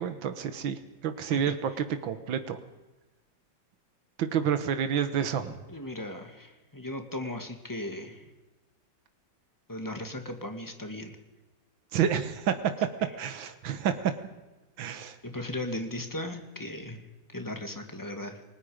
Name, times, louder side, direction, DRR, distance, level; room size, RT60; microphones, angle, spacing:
voice 1, 0.0-1.7 2.0-2.6 4.2-5.6 11.9-12.5 13.2-14.1 14.8-15.2, right 8 dB, 90° right, 9 dB, 1.9 m, -29 dB
voice 2, 5.7-8.2 9.7-11.2 15.2-18.4, left 1 dB, 10° left, 5 dB, 1.9 m, -37 dB
29.5 x 20.0 x 5.1 m, 1.1 s
omnidirectional pair, 2.1 m